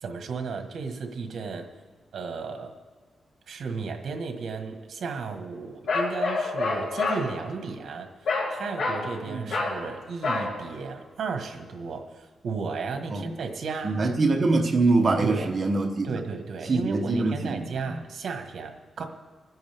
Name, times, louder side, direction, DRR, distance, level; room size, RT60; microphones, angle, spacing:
voice 1, 0.0-1.7 2.1-2.7 3.5-8.1 8.5-14.0 15.2-15.5 16.0-19.0, right 4 dB, 65° right, 5 dB, 1.6 m, -34 dB
Bark, 5.9-7.2 8.3-8.5 8.8-9.1 9.5-9.8 10.2-10.5, left 3 dB, 85° left, 5.1 m, -27 dB
voice 2, 13.8-16.1 16.7-17.7, right 3 dB, 30° right, 1 dB, 1.0 m, -23 dB
26.0 x 10.5 x 3.6 m, 1.5 s
wide cardioid pair, 155°, 0 cm